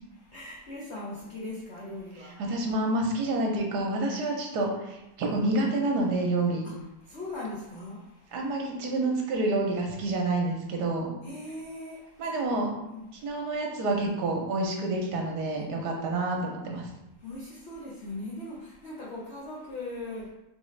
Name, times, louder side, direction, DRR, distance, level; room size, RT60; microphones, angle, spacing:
voice 1, 0.1-2.4 6.6-8.5 11.2-12.4 12.8-13.3 15.6-15.7 17.2-20.3, left 2 dB, 75° left, -5 dB, 0.6 m, -40 dB
voice 2, 2.4-6.7 8.3-11.1 12.2-12.7 13.2-16.9, right 2 dB, 70° right, 0 dB, 1.1 m, -28 dB
3.6 x 3.5 x 3.1 m, 0.93 s
omnidirectional pair, 2.0 m